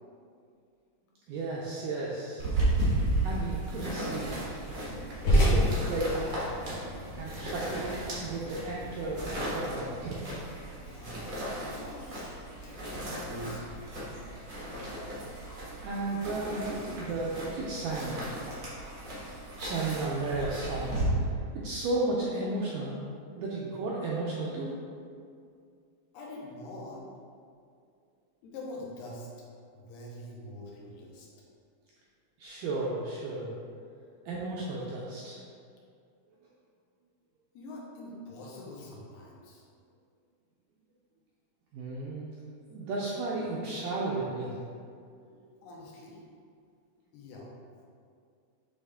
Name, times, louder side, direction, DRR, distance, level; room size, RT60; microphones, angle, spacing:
voice 1, 1.3-2.6 3.2-4.6 5.3-6.4 7.1-10.2 15.8-18.2 19.6-21.0 21.2-23.1 23.4-24.8 32.4-33.5 34.3-35.4 41.7-42.3 42.7-44.5 45.3-45.5, right 2 dB, 85° right, -4 dB, 1.9 m, -34 dB
sound 1, 2.4-21.0, right 1 dB, 60° right, 1.1 m, -35 dB
sound 2, 3.1-9.4, equal, 60° left, 2.2 m, -31 dB
voice 2, 10.8-13.8 26.1-27.0 28.4-29.3 29.7-31.3 37.5-39.6 45.6-46.2 47.1-47.5, left 1 dB, 85° left, -3 dB, 2.9 m, -44 dB
8.0 x 3.6 x 3.5 m, 2.3 s
omnidirectional pair, 4.5 m